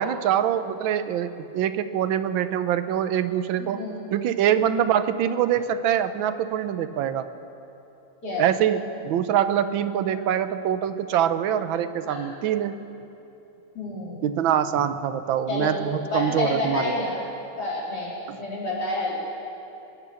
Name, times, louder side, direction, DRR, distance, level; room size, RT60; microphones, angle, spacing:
voice 1, 0.0-3.8 4.1-7.3 8.4-12.8 14.2-16.9 18.3-18.4, right 9 dB, 75° right, 11 dB, 1.4 m, -24 dB
voice 2, 3.6-4.0 8.2-8.5 10.1-10.2 12.0-12.4 13.7-14.2 15.5-15.7 16.1-17.2 17.6-19.5, left 2 dB, 50° left, -6 dB, 4.1 m, -29 dB
22.5 x 9.1 x 7.0 m, 3.0 s
omnidirectional pair, 2.3 m